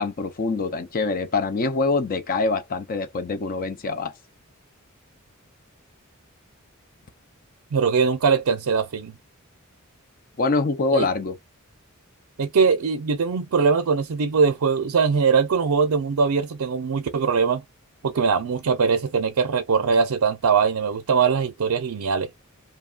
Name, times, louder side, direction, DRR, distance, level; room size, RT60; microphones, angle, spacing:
voice 1, 0.0-4.1 10.4-11.4, left 3 dB, 40° left, 0.4 m, -24 dB
voice 2, 7.7-9.1 10.9-11.1 12.4-17.6 18.0-22.3, right 5 dB, 75° right, 0.5 m, -21 dB
2.8 x 2.3 x 2.3 m
head